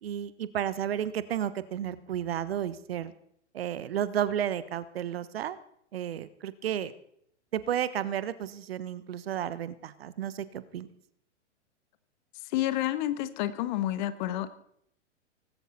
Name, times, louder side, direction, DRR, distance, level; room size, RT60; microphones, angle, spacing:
voice 1, 0.0-3.1 3.5-5.6 5.9-6.9 7.5-10.9, right 10 dB, 55° right, 16 dB, 1.3 m, -32 dB
voice 2, 12.5-14.5, left 14 dB, 40° left, 12 dB, 1.5 m, -29 dB
19.0 x 16.5 x 4.2 m, 0.68 s
figure-of-eight pair, 105°, 36 cm